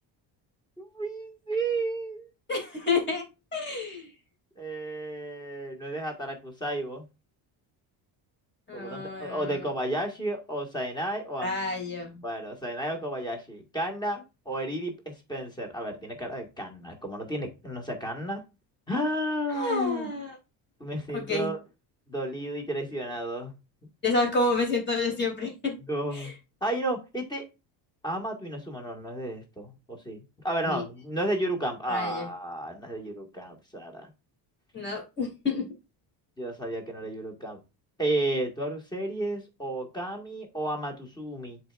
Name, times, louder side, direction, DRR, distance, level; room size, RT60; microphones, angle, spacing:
voice 1, 0.8-2.3 4.6-7.0 8.7-11.6 12.2-18.4 18.9-20.1 20.8-21.6 22.1-23.5 25.8-26.3 26.6-27.4 28.0-30.2 30.4-34.1 36.4-37.6 38.0-41.6, right 1 dB, 10° left, 1.8 m, -32 dB
voice 2, 2.5-3.2 3.5-4.1 8.7-9.6 11.4-12.2 19.5-20.4 21.1-21.5 24.0-25.8 26.1-26.3 30.6-30.8 31.9-32.3 34.7-35.6, left 3 dB, 25° left, 3.1 m, -29 dB
10.5 x 4.7 x 2.5 m
cardioid pair, 160°, 42 cm